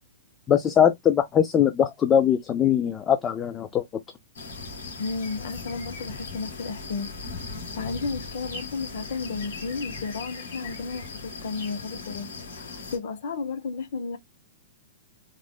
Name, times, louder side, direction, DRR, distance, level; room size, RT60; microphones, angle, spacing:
voice 1, 0.5-3.8, left 9 dB, 15° left, 0.3 m, -21 dB
sound 1, 4.3-13.0, left 4 dB, 90° left, 1.7 m, -38 dB
voice 2, 5.0-7.4 7.8-14.2, left 4 dB, 60° left, 0.9 m, -33 dB
3.6 x 2.0 x 3.6 m
hypercardioid pair, 165°, 0 cm